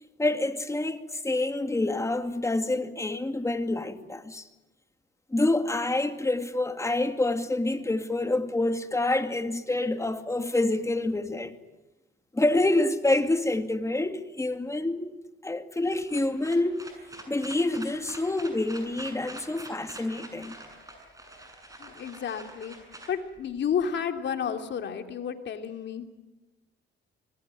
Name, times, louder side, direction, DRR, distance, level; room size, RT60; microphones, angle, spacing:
voice 1, 0.2-4.5 5.3-11.6 12.3-15.2 15.4-16.9 17.3-20.6, left 2 dB, 15° left, 2.4 m, -27 dB
sound 1, 15.8-23.9, right 1 dB, 15° right, 7.8 m, -46 dB
voice 2, 21.8-22.8 23.1-26.0, left 7 dB, 65° left, 3.1 m, -31 dB
26.0 x 20.5 x 9.2 m
cardioid pair, 90°, 20 cm